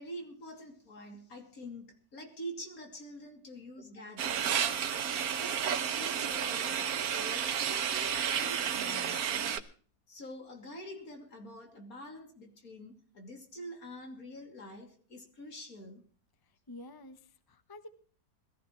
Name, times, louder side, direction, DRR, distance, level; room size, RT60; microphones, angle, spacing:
voice 1, 0.0-4.7 5.3-9.7 10.1-16.0, equal, 70° left, 3.3 m, -46 dB
sound 1, 4.2-9.6, right 8 dB, 80° right, 1.4 m, -31 dB
voice 2, 16.4-17.9, left 1 dB, 15° left, 0.9 m, -50 dB
21.5 x 14.5 x 3.1 m
omnidirectional pair, 1.6 m